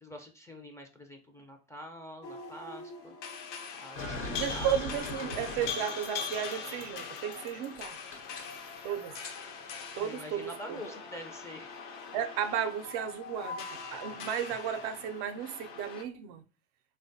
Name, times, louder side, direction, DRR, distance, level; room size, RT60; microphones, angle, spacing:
voice 1, 0.0-3.1 3.7-4.7 9.9-11.7, equal, 10° left, 0.4 m, -46 dB
sound 1, 2.2-16.0, left 5 dB, 70° left, 0.7 m, -42 dB
sound 2, 4.0-9.3, left 2 dB, 85° left, 1.0 m, -41 dB
voice 2, 4.3-8.0 8.8-9.1 9.9-10.8 12.1-16.4, right 9 dB, 65° right, 0.5 m, -34 dB
3.2 x 2.2 x 2.6 m
supercardioid pair, 95°, 37 cm